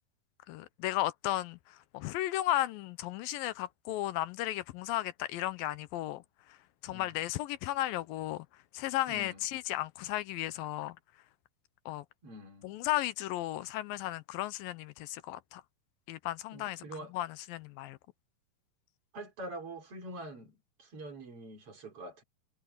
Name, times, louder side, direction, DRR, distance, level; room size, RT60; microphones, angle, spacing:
voice 1, 0.5-6.6 6.8-8.5 8.7-11.0 11.9-12.1 12.6-15.6 16.1-16.8 17.1-18.0, left 15 dB, 75° left, 2.2 m, -35 dB
voice 2, 9.1-9.4 12.2-12.8 16.5-17.1 19.1-22.2, right 1 dB, 35° right, 4.6 m, -45 dB
omnidirectional pair, 4.6 m